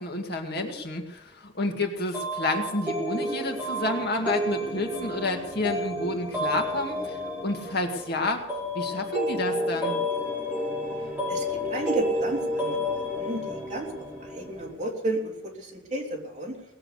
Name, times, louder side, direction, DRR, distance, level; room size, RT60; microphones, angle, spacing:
voice 1, 0.0-8.4 8.7-10.0, left 2 dB, 60° left, 3 dB, 2.2 m, -30 dB
sound 1, 2.1-14.7, left 1 dB, 10° right, 6.0 m, -31 dB
voice 2, 11.3-13.9 14.2-16.6, right 1 dB, 40° right, -1 dB, 3.3 m, -32 dB
18.5 x 7.7 x 8.2 m, 0.93 s
head